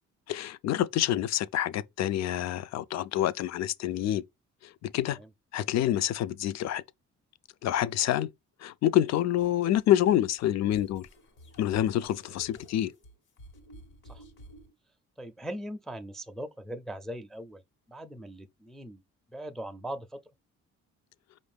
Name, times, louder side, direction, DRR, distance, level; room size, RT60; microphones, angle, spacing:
voice 1, 0.3-4.2 4.6-5.2 5.5-6.8 7.6-8.3 8.6-11.1 11.6-12.9, left 12 dB, 60° left, 0.4 m, -27 dB
sound 1, 9.4-14.7, equal, 85° left, 1.3 m, -52 dB
voice 2, 15.2-17.6 17.9-19.0 19.3-20.2, right 1 dB, ahead, 0.4 m, -40 dB
5.0 x 2.6 x 3.4 m
cardioid pair, 90°, 30 cm